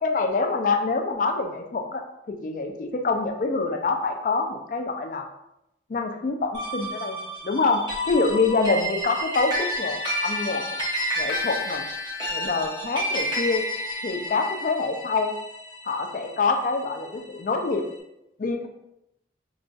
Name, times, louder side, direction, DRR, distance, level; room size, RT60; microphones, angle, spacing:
voice 1, 0.0-5.2 5.9-7.2 7.4-10.6 11.2-11.8 12.3-13.7 14.0-15.3 15.9-17.8 18.4-18.7, left 3 dB, 45° left, 4 dB, 0.4 m, -26 dB
sound 1, 6.5-17.2, equal, 25° right, 0.7 m, -30 dB
4.8 x 2.3 x 2.5 m, 0.85 s
head